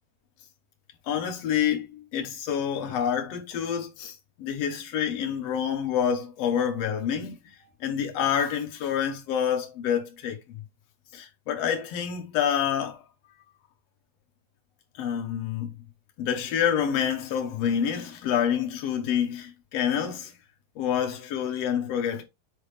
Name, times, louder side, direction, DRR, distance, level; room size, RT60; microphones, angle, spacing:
voice 1, 1.1-7.4 7.8-10.4 11.1-13.0 15.0-15.7 16.2-20.3 20.7-22.2, left 8 dB, 80° left, 1.4 m, -27 dB
8.5 x 4.3 x 3.4 m
omnidirectional pair, 4.6 m